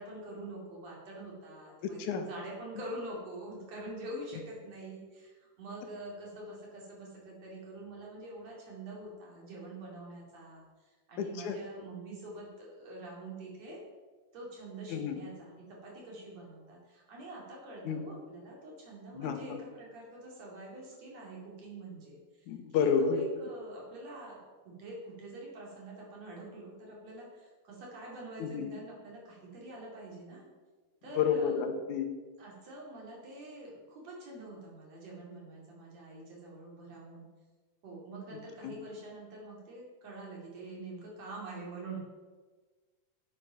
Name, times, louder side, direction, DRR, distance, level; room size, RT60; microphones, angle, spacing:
voice 1, 0.0-13.8 14.3-30.5 31.0-31.6 32.4-37.3 37.8-42.0, right 2 dB, 60° right, -3 dB, 3.6 m, -45 dB
voice 2, 1.8-2.3 11.2-11.6 14.9-15.2 17.9-18.1 19.1-19.6 22.5-23.2 28.4-28.7 31.1-32.1 38.6-38.8, left 6 dB, 80° left, 6 dB, 2.2 m, -30 dB
8.5 x 8.2 x 5.7 m, 1.4 s
omnidirectional pair, 3.6 m